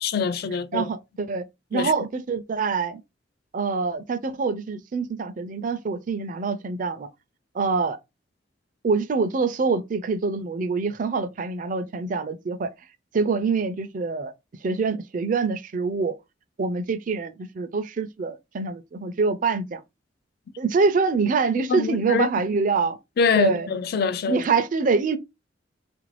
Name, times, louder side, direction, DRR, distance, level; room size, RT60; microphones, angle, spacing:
voice 1, 0.0-0.9 1.7-1.9 21.6-22.3 23.2-24.4, left 5 dB, 55° left, 0.4 m, -24 dB
voice 2, 0.7-1.4 1.7-3.0 3.5-7.1 7.5-8.0 8.8-12.7 13.1-14.3 14.6-16.1 16.6-19.8 20.6-23.0 23.4-23.7 24.3-25.2, right 4 dB, 45° right, 0.4 m, -25 dB
3.6 x 2.5 x 3.2 m
head